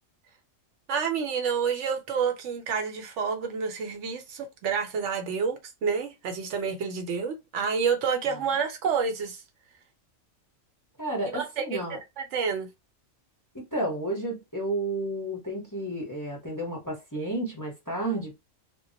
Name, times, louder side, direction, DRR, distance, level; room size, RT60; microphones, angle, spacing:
voice 1, 0.9-9.4 11.3-11.8 12.2-12.7, right 6 dB, 70° right, 0.9 m, -29 dB
voice 2, 11.0-12.0 13.7-18.4, right 1 dB, 20° left, 0.6 m, -31 dB
2.2 x 2.1 x 3.7 m
omnidirectional pair, 1.3 m